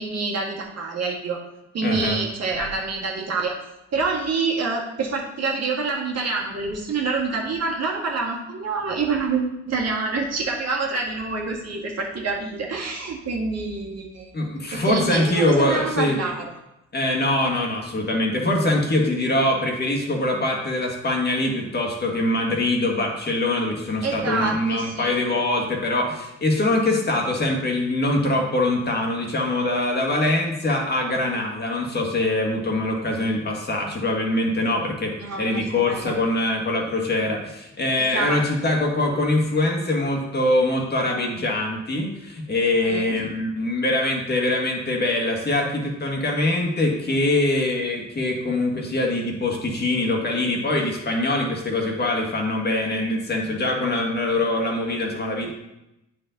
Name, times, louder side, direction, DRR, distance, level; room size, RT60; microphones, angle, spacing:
voice 1, 0.0-1.4 1.7-3.5 3.9-16.4 24.0-25.2 35.2-36.2 38.0-38.4 39.1-39.2 42.8-43.2, right 4 dB, 60° right, -1 dB, 1.7 m, -27 dB
voice 2, 1.8-2.2 14.3-16.2 16.9-55.5, left 2 dB, 35° left, 0 dB, 1.6 m, -23 dB
8.6 x 4.6 x 3.9 m, 0.90 s
cardioid pair, 90°, 30 cm